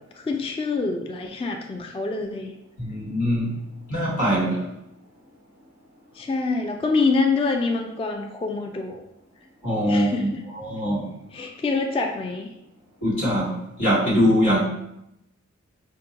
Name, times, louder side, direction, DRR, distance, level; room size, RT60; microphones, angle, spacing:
voice 1, 0.2-2.5 6.1-9.0 9.9-10.4 11.3-12.5, left 3 dB, 20° left, 3 dB, 0.3 m, -26 dB
voice 2, 2.8-3.5 3.9-4.6 9.6-10.3 10.6-11.1 13.0-14.6, equal, 85° left, -7 dB, 1.4 m, -22 dB
4.4 x 2.3 x 2.8 m, 0.83 s
wide cardioid pair, 60°, 29 cm